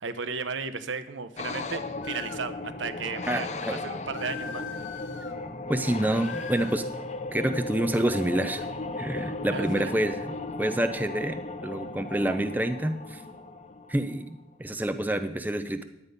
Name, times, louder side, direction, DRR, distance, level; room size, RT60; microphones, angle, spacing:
voice 1, 0.0-3.5 3.8-4.7 9.5-10.0, right 5 dB, 80° right, 10 dB, 0.8 m, -34 dB
sound 1, 1.4-14.3, left 2 dB, 35° left, 0.6 m, -36 dB
sound 2, 2.0-2.5 4.1-5.4 6.0-6.9, left 7 dB, 85° left, 1.0 m, -41 dB
voice 2, 3.3-3.8 5.7-6.8 7.3-8.7 9.0-13.2 13.9-15.8, right 1 dB, 10° right, 8 dB, 0.4 m, -28 dB
11.0 x 8.2 x 5.2 m, 0.88 s
head